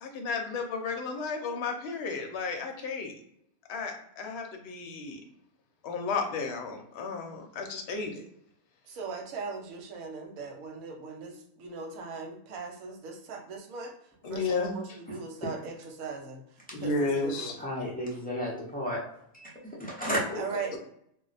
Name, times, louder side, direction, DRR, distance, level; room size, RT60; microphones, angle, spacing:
voice 1, 0.0-3.2 3.7-5.2 5.8-8.2 14.2-14.8 16.7-17.6 20.1-20.4 20.7-20.8, left 4 dB, 60° left, 3 dB, 0.8 m, -33 dB
voice 2, 8.9-13.9 14.3-17.6 20.3-20.8, right 4 dB, 80° right, 3 dB, 1.1 m, -39 dB
voice 3, 17.6-19.0 19.3-20.2, equal, 15° left, -5 dB, 0.3 m, -33 dB
2.3 x 2.1 x 3.9 m, 0.72 s
omnidirectional pair, 1.5 m